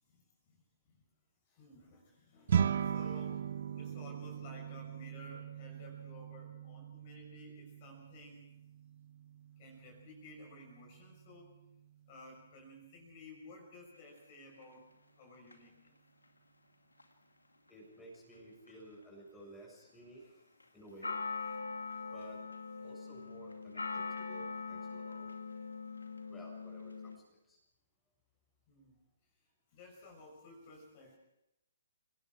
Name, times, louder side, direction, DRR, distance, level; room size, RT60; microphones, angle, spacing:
voice 1, 0.1-1.0 1.5-8.5 9.6-11.6 12.1-14.9 15.2-15.9 20.2-20.4 28.7-29.0 29.7-31.2, left 1 dB, 35° left, 1 dB, 6.5 m, -55 dB
sound 1, 2.5-12.0, right 8 dB, 50° right, 1.2 m, -39 dB
sound 2, 15.5-15.6 17.0-17.1 18.7-18.8 19.0-19.1 20.6-20.7 21.0-27.2, left 4 dB, 80° left, 2.5 m, -42 dB
voice 2, 17.7-20.2 20.7-21.2 22.1-22.4 22.8-25.4 26.3-27.6, right 1 dB, 5° left, -3 dB, 7.3 m, -54 dB
30.0 x 19.0 x 5.0 m, 0.85 s
figure-of-eight pair, 130°, 0 cm